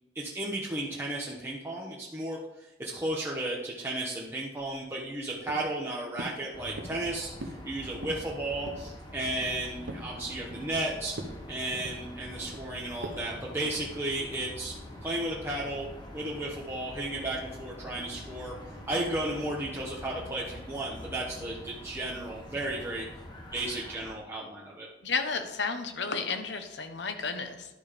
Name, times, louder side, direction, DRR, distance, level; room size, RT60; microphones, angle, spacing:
voice 1, 0.1-11.1 11.5-14.7 15.0-15.9 16.1-18.5 18.9-23.0 23.5-24.9, right 1 dB, 15° right, -4 dB, 1.0 m, -34 dB
sound 1, 4.6-5.2 5.5-5.8 6.2-6.4 6.8-7.1 7.4-7.7 7.9-8.3 8.7-8.9 9.3-10.1 10.5-10.8 11.1-11.4 11.7-12.6 13.0-13.2 13.6-13.8 14.3-14.6, right 1 dB, 75° right, 0.9 m, -42 dB
sound 2, 6.5-24.2, left 1 dB, 25° left, 1.3 m, -45 dB
voice 2, 25.0-27.7, left 4 dB, 70° left, 7 dB, 1.0 m, -32 dB
11.0 x 5.2 x 5.1 m, 1.0 s
head